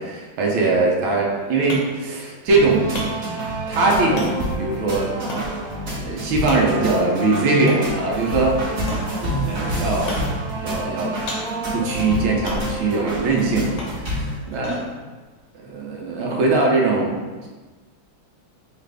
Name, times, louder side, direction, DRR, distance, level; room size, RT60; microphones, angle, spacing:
voice 1, 0.0-3.1 3.7-5.2 6.0-8.6 9.5-10.2 10.6-11.2 11.7-14.9 15.5-17.5, right 3 dB, 90° right, -1 dB, 1.5 m, -21 dB
sound 1, 1.1-16.7, left 2 dB, 80° left, 1.6 m, -39 dB
sound 2, 2.5-14.3, right 1 dB, 55° right, 1.7 m, -27 dB
Slam, 9.4-10.7 11.0-14.5, right 1 dB, 35° right, 1.1 m, -40 dB
5.6 x 2.5 x 3.3 m, 1.3 s
omnidirectional pair, 2.2 m